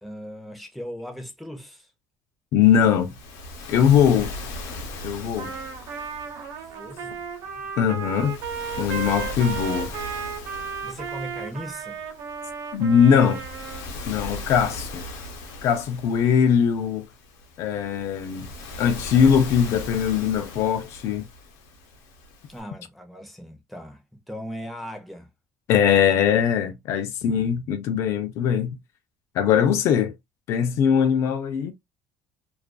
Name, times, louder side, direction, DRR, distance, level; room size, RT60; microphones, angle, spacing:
voice 1, 0.0-1.9 6.6-7.3 7.6-8.0 10.8-12.0 22.5-25.3 27.3-27.7, equal, ahead, 0.6 m, -39 dB
voice 2, 2.5-3.1 3.7-4.3 5.0-5.5 7.8-8.4 8.8-9.9 12.7-13.4 14.1-15.0 15.6-17.1 17.6-18.5 18.8-21.3 25.7-28.8 29.3-30.1 30.5-31.7, left 8 dB, 60° left, 0.4 m, -21 dB
Waves surf, 2.6-22.6, left 2 dB, 75° left, 0.8 m, -39 dB
Trumpet, 5.4-13.9, right 6 dB, 70° right, 0.7 m, -34 dB
2.4 x 2.3 x 2.2 m
cardioid pair, 140°, 5 cm